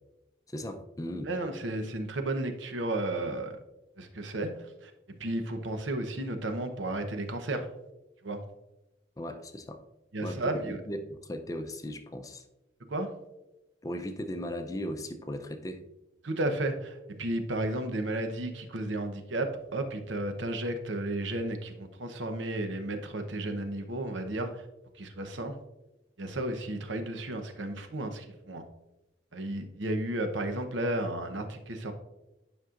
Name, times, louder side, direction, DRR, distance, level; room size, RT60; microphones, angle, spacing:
voice 1, 0.5-1.3 9.2-9.8 10.2-12.4 13.8-15.8, equal, 20° left, 7 dB, 0.4 m, -37 dB
voice 2, 1.3-3.5 4.0-4.5 4.8-4.9 5.2-7.7 8.2-8.4 10.1-10.8 12.9-13.1 16.2-24.6 25.0-25.6 26.2-28.6 29.3-31.9, right 1 dB, 85° right, 7 dB, 0.9 m, -33 dB
10.5 x 5.4 x 2.5 m, 0.96 s
head